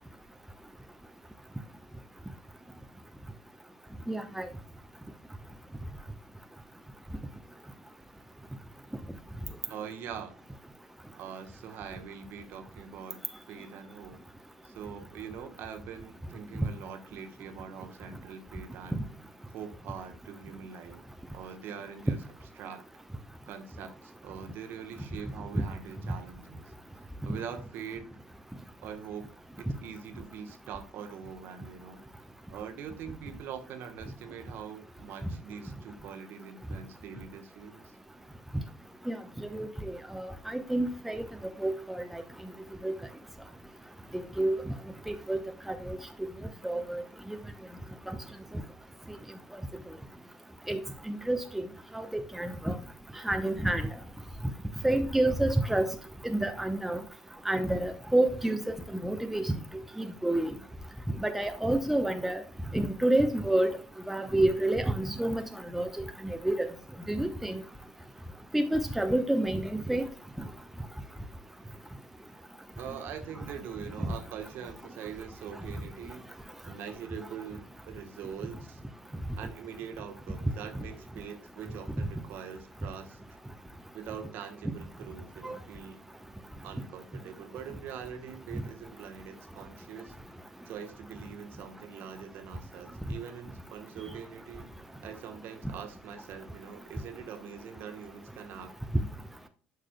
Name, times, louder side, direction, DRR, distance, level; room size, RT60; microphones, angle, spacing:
voice 1, 4.1-4.5 39.1-39.2 39.5-41.2 41.6-42.2 42.8-42.9 44.4-44.6 45.1-45.4 45.7-46.0 46.6-47.0 47.3-47.4 48.1-48.2 50.7-50.8 51.1-51.6 51.9-52.7 53.2-53.9 54.8-55.9 56.2-57.0 57.5-58.8 59.0-59.5 60.0-60.5 61.2-62.4 62.7-63.7 64.1-65.4 65.7-65.9 66.2-66.7 67.1-67.6 68.5-70.0 74.0-74.1 85.4-85.6, right 1 dB, 5° right, 6 dB, 0.8 m, -28 dB
voice 2, 9.7-10.3 11.1-14.2 14.6-19.0 19.5-21.0 21.3-22.2 22.6-22.8 23.5-26.7 27.3-28.1 28.8-29.3 29.6-32.0 32.5-37.9 72.7-76.3 76.6-78.8 79.4-83.4 83.9-86.0 86.6-90.1 90.7-94.7 95.0-98.7, right 7 dB, 50° right, 6 dB, 1.1 m, -43 dB
11.5 x 4.9 x 2.2 m, 0.38 s
figure-of-eight pair, 60°, 5 cm